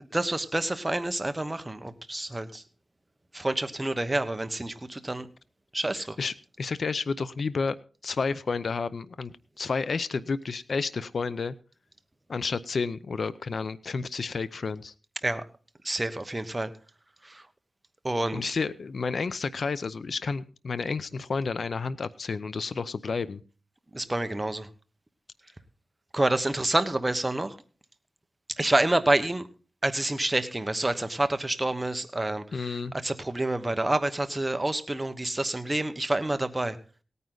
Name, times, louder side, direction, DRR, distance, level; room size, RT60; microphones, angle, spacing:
voice 1, 0.1-2.6 3.3-5.3 5.7-6.2 15.2-15.4 15.8-16.7 17.2-17.4 18.0-18.5 23.9-24.7 26.1-27.6 28.6-29.5 29.8-36.8, right 1 dB, 20° right, 9 dB, 1.1 m, -28 dB
voice 2, 5.9-7.8 8.0-11.5 12.3-14.9 18.3-23.4 32.5-32.9, left 4 dB, 65° left, 16 dB, 0.6 m, -31 dB
17.5 x 9.5 x 3.9 m, 0.38 s
wide cardioid pair, 75°, 0 cm